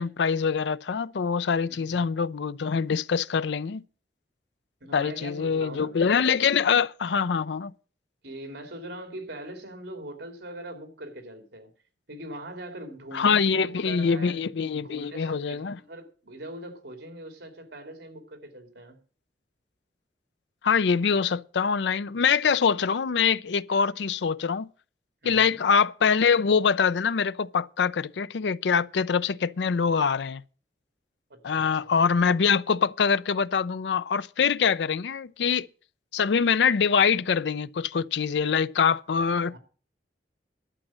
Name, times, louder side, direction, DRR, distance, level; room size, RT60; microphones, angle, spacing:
voice 1, 0.0-3.8 4.9-7.7 13.1-15.8 20.6-24.7 25.3-30.4 31.4-35.7 36.1-39.6, left 6 dB, 85° left, 0.5 m, -24 dB
voice 2, 1.7-2.1 4.8-6.0 8.2-11.7 12.1-14.4 14.7-19.0 25.2-25.6 31.3-31.9 39.5-39.6, right 1 dB, 80° right, 2.8 m, -42 dB
12.0 x 7.3 x 7.5 m
head